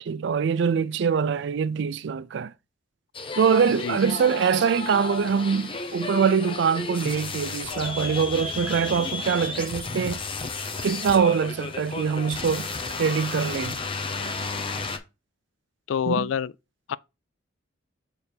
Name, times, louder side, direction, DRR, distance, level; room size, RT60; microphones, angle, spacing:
voice 1, 0.0-2.5 3.4-10.2 10.8-12.7 13.0-13.8 16.1-16.3, right 6 dB, 65° right, 0.4 m, -24 dB
sound 1, 3.1-15.0, left 4 dB, 30° left, 0.8 m, -33 dB
voice 2, 15.9-16.5 16.9-17.0, left 7 dB, 80° left, 0.3 m, -26 dB
6.8 x 3.3 x 4.4 m
head